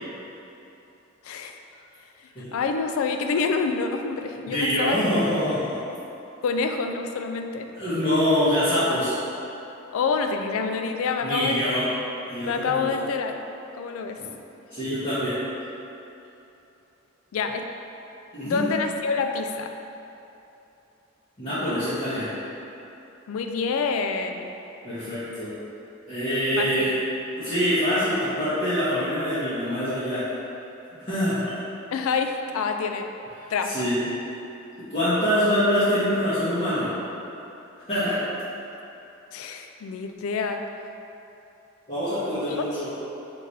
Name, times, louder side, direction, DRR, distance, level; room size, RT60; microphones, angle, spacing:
voice 1, 1.2-1.6 2.5-5.0 6.4-7.7 9.9-11.6 12.4-13.4 13.7-14.2 17.3-17.7 18.4-19.7 23.3-24.6 26.6-26.9 31.9-33.1 33.5-33.9 39.3-40.6, left 5 dB, 85° left, 5 dB, 0.3 m, -27 dB
voice 2, 4.5-5.8 7.7-9.1 11.2-11.8 12.3-12.9 14.7-15.4 18.3-18.6 21.4-22.3 24.8-25.5 26.1-27.0 27.4-30.3 31.1-31.4 33.6-34.0 34.9-36.9 37.9-38.2 41.9-42.9, equal, 35° left, -16 dB, 1.2 m, -24 dB
3.9 x 3.2 x 4.1 m, 2.9 s
head